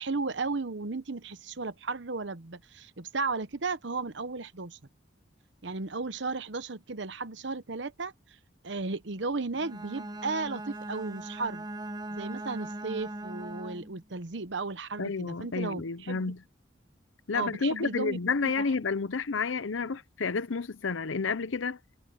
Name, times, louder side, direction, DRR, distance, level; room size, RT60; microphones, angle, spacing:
voice 1, 0.0-4.8 5.6-8.1 8.6-11.6 12.1-16.3 17.3-18.2 18.4-18.6, right 3 dB, 65° right, 1.0 m, -34 dB
Bowed string instrument, 9.5-14.0, right 1 dB, 20° right, 1.1 m, -40 dB
voice 2, 15.0-16.4 17.3-21.8, left 4 dB, 80° left, 0.7 m, -30 dB
head